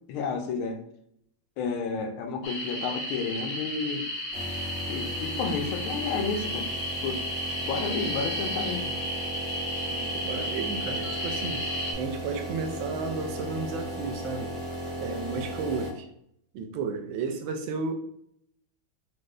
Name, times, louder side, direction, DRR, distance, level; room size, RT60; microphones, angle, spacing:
voice 1, 0.1-0.8 1.6-4.1 4.9-6.7 7.0-7.2 7.6-8.9, left 5 dB, 90° left, 5 dB, 1.5 m, -31 dB
sound 1, 2.4-11.9, equal, 70° left, 0.7 m, -33 dB
sound 2, 4.3-15.9, right 1 dB, 65° right, 2.3 m, -36 dB
voice 2, 10.1-11.7 12.0-14.5 15.0-16.1 16.5-17.9, right 4 dB, 80° right, 4 dB, 1.4 m, -33 dB
5.1 x 2.1 x 3.2 m, 0.71 s
omnidirectional pair, 2.2 m